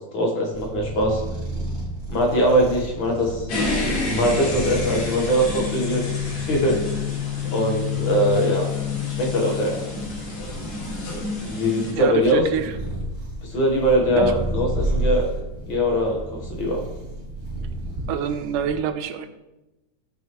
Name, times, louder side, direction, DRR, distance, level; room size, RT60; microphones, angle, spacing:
voice 1, 0.1-1.2 2.1-3.5 4.0-6.8 7.5-8.7 9.1-9.8 11.4-12.4 13.4-15.3 15.7-16.8, equal, 55° left, 0 dB, 1.5 m, -22 dB
sound 1, 0.5-18.8, right 1 dB, 40° right, 3.5 m, -32 dB
sound 2, 3.5-11.9, left 6 dB, 90° left, 4.1 m, -28 dB
voice 2, 11.9-12.7 14.1-14.3 18.1-19.3, right 8 dB, 90° right, 9 dB, 2.2 m, -26 dB
16.0 x 5.6 x 3.1 m, 1.0 s
omnidirectional pair, 3.6 m